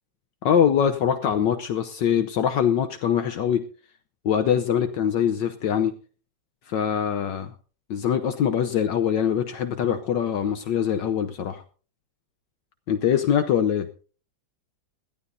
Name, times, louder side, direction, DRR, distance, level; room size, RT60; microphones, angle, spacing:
voice 1, 0.4-3.7 4.2-5.9 6.7-7.5 7.9-11.6 12.9-13.9, left 8 dB, 70° left, 7 dB, 1.5 m, -23 dB
21.0 x 14.0 x 2.7 m, 0.38 s
omnidirectional pair, 2.1 m